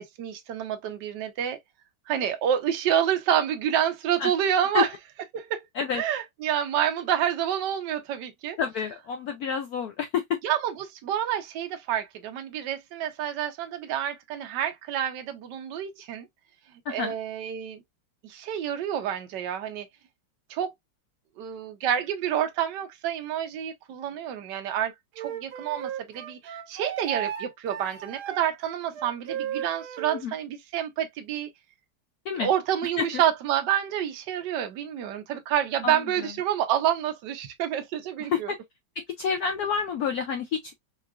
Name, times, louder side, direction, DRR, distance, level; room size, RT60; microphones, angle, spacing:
voice 1, 0.0-1.6 2.1-4.9 5.3-5.7 5.9-8.6 10.4-16.3 16.9-17.8 18.2-19.9 20.5-20.7 21.4-31.5 32.4-38.5, right 10 dB, 65° right, 1.3 m, -28 dB
voice 2, 8.6-10.4 16.9-17.1 30.2-30.3 32.3-32.5 33.0-33.1 35.8-36.3 38.2-38.6 39.0-40.7, left 6 dB, 80° left, 0.8 m, -29 dB
Wind instrument woodwind instrument, 25.2-30.2, right 10 dB, 85° right, 1.6 m, -35 dB
4.8 x 2.4 x 2.3 m
omnidirectional pair, 2.2 m